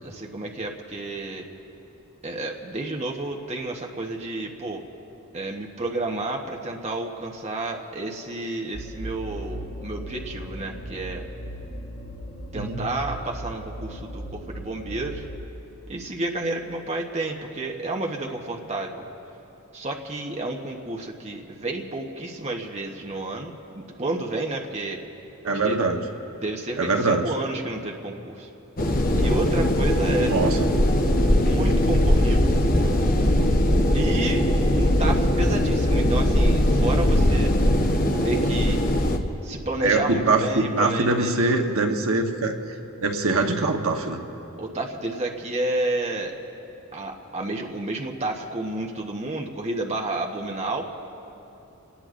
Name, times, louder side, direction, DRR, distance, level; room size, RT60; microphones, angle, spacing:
voice 1, 0.0-1.4 2.2-4.8 5.3-11.2 12.5-15.2 15.9-19.0 19.7-25.0 25.4-25.8 26.4-28.5 29.1-30.3 31.4-32.5 33.9-34.4 34.8-37.5 38.2-38.8 39.4-41.4 44.6-46.4 46.9-50.8, right 2 dB, 30° right, 1 dB, 1.0 m, -30 dB
sound 1, 8.7-15.4, right 1 dB, 85° left, 2.1 m, -37 dB
voice 2, 25.4-26.0 26.8-27.3 30.3-30.7 39.8-42.5 43.0-44.2, right 3 dB, 75° right, 3 dB, 1.1 m, -23 dB
sound 2, 28.8-39.2, left 1 dB, 40° left, 0.9 m, -20 dB
29.5 x 18.5 x 2.5 m, 2.9 s
head